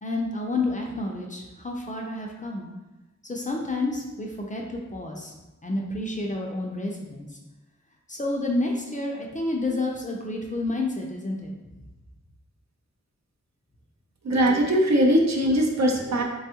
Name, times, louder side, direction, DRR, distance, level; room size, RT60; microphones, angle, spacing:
voice 1, 0.0-2.7 3.2-5.3 5.6-7.3 8.1-11.5, left 2 dB, 25° left, 0 dB, 0.4 m, -29 dB
voice 2, 14.2-16.2, equal, 65° right, 0 dB, 0.6 m, -21 dB
3.4 x 2.3 x 2.8 m, 1.1 s
wide cardioid pair, 75°, 30 cm